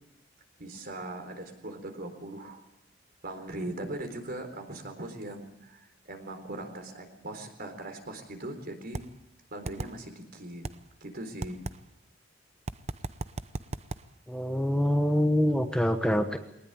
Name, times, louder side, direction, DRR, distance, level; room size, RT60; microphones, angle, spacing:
voice 1, 0.6-2.6 3.2-9.0 9.5-10.6 11.0-11.6, right 1 dB, 50° right, 6 dB, 4.0 m, -40 dB
sound 1, 8.9-9.0 9.7-9.9 10.6-10.8 11.4-11.8 12.7-14.0, right 2 dB, 35° right, 0.8 m, -34 dB
voice 2, 14.3-16.4, equal, 5° left, 6 dB, 1.2 m, -25 dB
22.0 x 19.0 x 8.8 m, 0.81 s
head